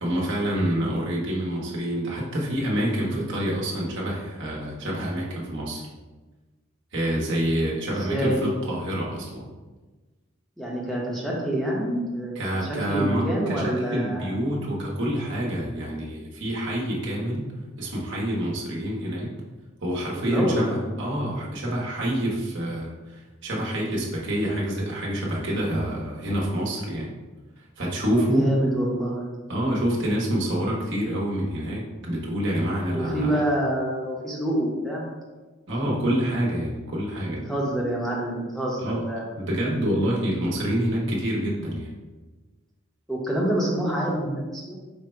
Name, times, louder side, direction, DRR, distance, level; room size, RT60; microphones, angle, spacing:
voice 1, 0.0-5.9 6.9-9.5 12.3-17.5 17.8-19.3 19.8-27.1 27.8-28.5 29.5-33.4 35.7-37.4 38.8-39.1 39.3-41.9, equal, 60° right, -4 dB, 1.0 m, -27 dB
voice 2, 7.9-8.5 10.6-14.3 20.1-20.8 28.2-29.3 32.9-35.1 35.8-35.9 37.4-39.2 43.1-44.8, right 1 dB, ahead, -4 dB, 0.8 m, -27 dB
5.0 x 2.2 x 4.4 m, 1.2 s
head